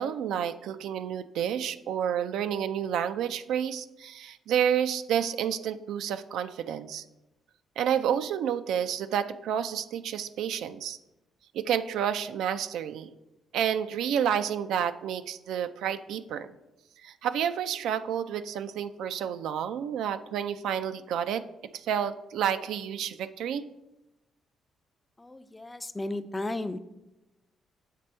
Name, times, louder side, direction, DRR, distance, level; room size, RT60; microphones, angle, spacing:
voice 1, 0.0-7.0 7.8-11.0 11.5-13.1 13.5-16.5 17.0-21.4 21.8-23.7, right 9 dB, 80° right, 11 dB, 0.3 m, -30 dB
voice 2, 25.2-26.8, left 2 dB, 15° left, 12 dB, 0.4 m, -34 dB
7.5 x 3.4 x 4.3 m, 0.97 s
cardioid pair, 90°, 0 cm